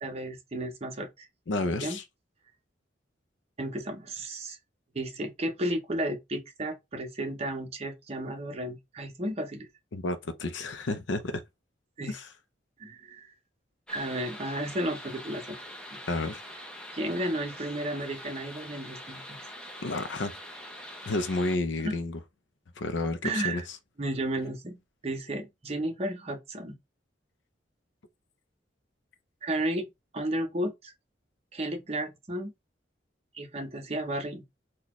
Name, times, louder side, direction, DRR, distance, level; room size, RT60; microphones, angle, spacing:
voice 1, 0.0-1.3 1.8-2.0 3.6-4.6 4.9-9.7 12.0-12.1 12.8-13.3 13.9-15.6 15.9-16.0 16.9-19.4 21.8-21.9 23.2-23.6 24.0-24.8 25.0-26.8 29.4-29.9 30.1-30.9 31.5-32.5 33.3-34.4, right 1 dB, 35° right, 0.7 m, -33 dB
voice 2, 1.5-2.0 9.9-11.4 12.1-12.3 16.1-16.4 19.8-20.4 21.0-22.2 22.8-23.6, left 2 dB, 80° left, 0.5 m, -31 dB
sound 1, 13.9-21.6, equal, 5° left, 0.5 m, -44 dB
4.0 x 2.3 x 3.0 m
head